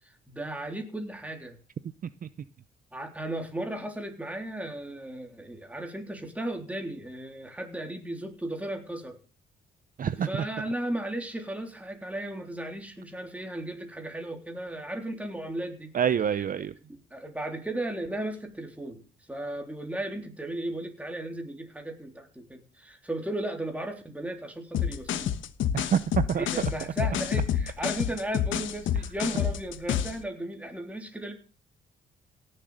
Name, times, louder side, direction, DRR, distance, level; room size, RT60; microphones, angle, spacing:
voice 1, 0.3-1.6 2.9-9.2 10.2-15.9 16.8-19.0 19.3-25.3 26.4-31.3, right 1 dB, 5° right, 3 dB, 3.6 m, -35 dB
voice 2, 10.0-10.5 15.9-16.7 25.7-26.0 26.3-26.5, right 8 dB, 45° right, 14 dB, 0.7 m, -26 dB
sound 1, 24.7-30.2, left 9 dB, 75° left, 1.2 m, -28 dB
17.0 x 7.7 x 6.5 m, 0.38 s
cardioid pair, 90°, 20 cm